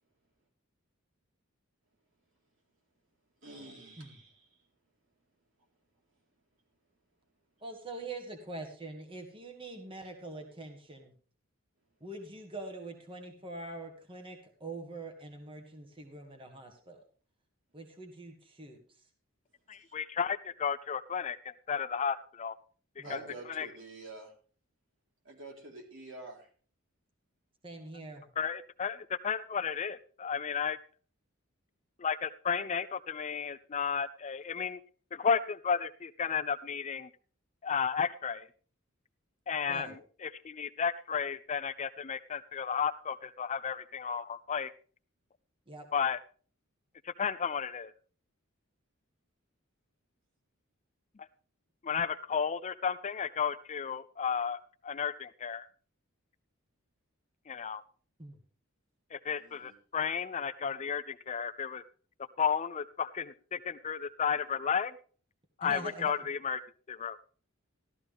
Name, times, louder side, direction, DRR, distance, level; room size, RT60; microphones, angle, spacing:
voice 1, 3.4-4.6 19.7-19.9 23.0-24.3 25.2-26.5 59.4-59.7, right 2 dB, 65° right, 0 dB, 3.9 m, -48 dB
voice 2, 7.6-11.1 12.0-17.0 17.7-18.8 23.0-23.3 27.6-28.3 39.7-40.0 45.7-45.9 58.2-58.4 65.6-66.1, right 2 dB, 25° right, 4 dB, 1.8 m, -44 dB
voice 3, 19.7-22.5 23.0-23.2 23.5-23.7 28.4-29.0 29.2-30.8 32.0-34.8 35.1-37.1 37.6-38.5 39.5-39.9 40.2-44.7 45.9-46.2 47.0-47.9 51.8-55.7 57.5-57.8 59.1-61.8 62.4-64.9 65.6-66.6 66.9-67.2, left 6 dB, 35° left, 12 dB, 0.5 m, -33 dB
13.5 x 13.5 x 3.5 m, 0.42 s
head